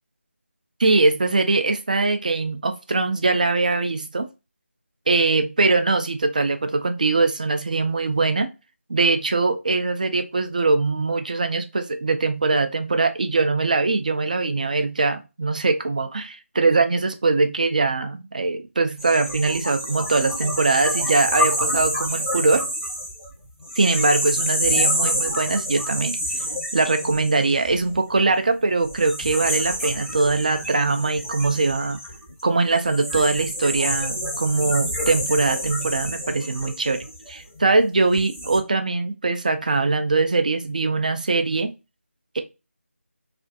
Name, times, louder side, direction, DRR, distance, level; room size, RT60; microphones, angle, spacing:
voice 1, 0.8-4.3 5.1-8.5 8.9-22.6 23.8-26.2 26.7-32.0 32.4-41.7 42.3-42.4, right 3 dB, 35° right, 7 dB, 0.3 m, -22 dB
sound 1, 19.0-28.2 28.8-37.6 38.1-38.6, equal, ahead, 0.7 m, -28 dB
2.4 x 2.2 x 2.4 m, 0.27 s
figure-of-eight pair, 165°, 7 cm